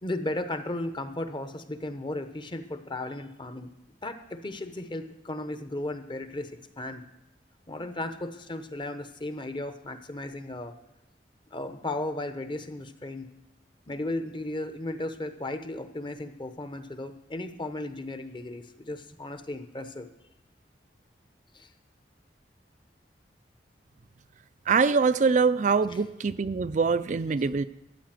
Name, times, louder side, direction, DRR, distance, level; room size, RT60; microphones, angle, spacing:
voice 1, 0.0-3.7 4.0-7.0 7.7-10.8 11.5-13.3 13.9-20.1 21.5-21.7 25.9-26.0, left 2 dB, 25° left, 8 dB, 1.0 m, -35 dB
voice 2, 24.7-27.7, right 5 dB, 45° right, 13 dB, 0.4 m, -24 dB
13.5 x 8.4 x 7.7 m, 0.87 s
head